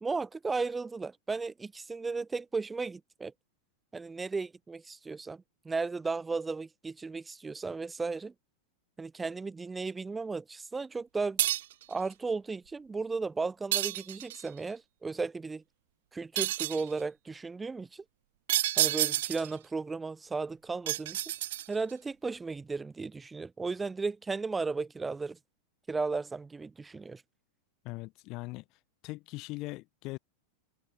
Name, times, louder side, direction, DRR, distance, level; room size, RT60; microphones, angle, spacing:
voice 1, 0.0-3.3 3.9-8.3 9.0-11.4 11.9-15.6 16.1-18.0 18.8-21.2 21.7-25.4 25.9-27.2, right 4 dB, 10° right, 1.1 m, -35 dB
sound 1, 11.4-11.8 13.7-14.5 16.4-16.9 18.5-19.5 20.9-21.9, right 14 dB, 55° right, 0.5 m, -29 dB
voice 2, 27.8-28.6 29.0-30.2, left 22 dB, 40° left, 0.9 m, -40 dB
open air
figure-of-eight pair, 90°, 0 cm